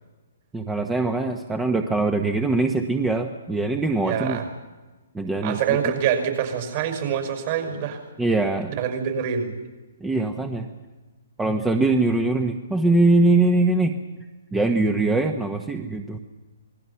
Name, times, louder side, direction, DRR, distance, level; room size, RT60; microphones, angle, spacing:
voice 1, 0.5-4.4 5.1-5.8 8.2-8.7 10.0-10.7 11.4-13.9 14.5-16.2, right 2 dB, 10° right, 5 dB, 1.3 m, -22 dB
voice 2, 4.0-4.5 5.4-8.0 8.8-9.5, right 8 dB, 45° right, 6 dB, 5.9 m, -25 dB
27.0 x 20.5 x 5.8 m, 1.2 s
hypercardioid pair, 135°, 0 cm